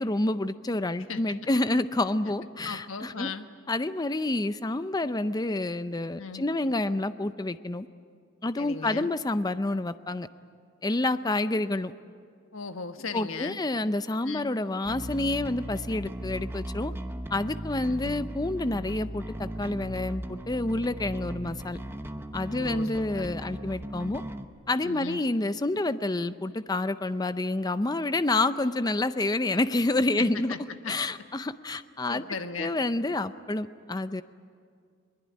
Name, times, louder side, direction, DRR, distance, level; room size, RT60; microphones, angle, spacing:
voice 1, 0.0-3.3 3.7-7.9 8.4-10.3 10.8-11.9 13.1-16.9 17.3-21.8 22.3-24.2 24.7-30.5 30.9-32.2 32.6-34.2, left 2 dB, 20° left, 12 dB, 0.5 m, -28 dB
voice 2, 2.6-3.4 6.2-6.4 8.6-9.1 12.5-13.6 14.2-14.5 17.9-18.1 22.5-23.3 24.8-25.2 30.2-30.9 32.1-32.7, left 4 dB, 75° left, 8 dB, 1.3 m, -37 dB
Bass guitar, 14.8-24.4, right 1 dB, 10° right, 0.9 m, -37 dB
22.5 x 20.5 x 9.6 m, 2.2 s
head